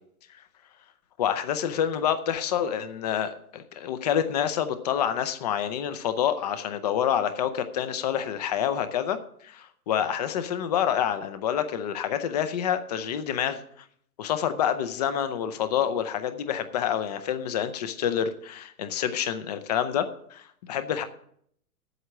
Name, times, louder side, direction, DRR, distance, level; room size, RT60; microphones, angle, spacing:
voice 1, 1.2-13.6 14.2-21.0, left 9 dB, 30° left, 10 dB, 0.6 m, -27 dB
8.0 x 7.1 x 7.7 m, 0.66 s
hypercardioid pair, 155°, 45 cm